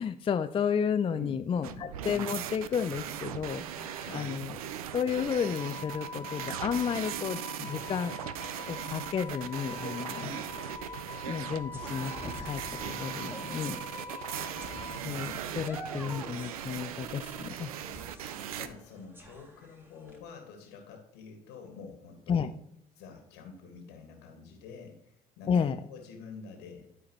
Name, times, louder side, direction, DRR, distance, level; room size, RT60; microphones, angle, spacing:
voice 1, 0.0-4.6 4.9-8.2 8.7-10.2 11.3-12.6 12.9-13.8 15.0-17.7 22.3-22.5 25.5-25.8, left 7 dB, 30° left, 10 dB, 0.4 m, -32 dB
voice 2, 1.1-1.9 4.0-4.4 10.1-10.5 14.3-15.7 18.5-22.5 22.9-26.9, left 4 dB, 75° left, 3 dB, 1.6 m, -47 dB
sound 1, 1.6-18.7, right 10 dB, 85° right, 0.4 m, -39 dB
Wind instrument woodwind instrument, 5.2-15.1, left 2 dB, 15° left, 1.5 m, -44 dB
sound 2, 10.1-20.2, right 1 dB, 10° right, 1.9 m, -48 dB
12.0 x 4.8 x 3.1 m, 0.81 s
hypercardioid pair, 55°, 18 cm